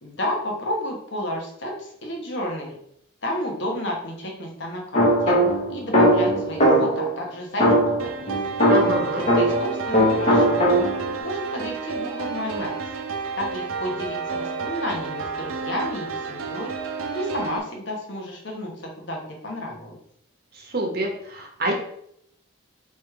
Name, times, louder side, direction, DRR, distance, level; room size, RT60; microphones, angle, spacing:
voice 1, 0.0-2.8 3.2-5.4 5.7-8.4 9.1-10.7 11.2-12.9 13.4-16.7 17.1-20.0, left 1 dB, 55° left, 0 dB, 1.1 m, -31 dB
sound 1, 4.9-7.1 7.6-9.7 9.9-11.1, equal, 30° left, 1.1 m, -19 dB
sound 2, 8.0-17.6, right 5 dB, 90° right, 0.7 m, -31 dB
voice 2, 8.7-9.2 20.5-21.7, right 1 dB, 45° right, 1 dB, 0.9 m, -27 dB
3.5 x 3.1 x 4.6 m, 0.71 s
head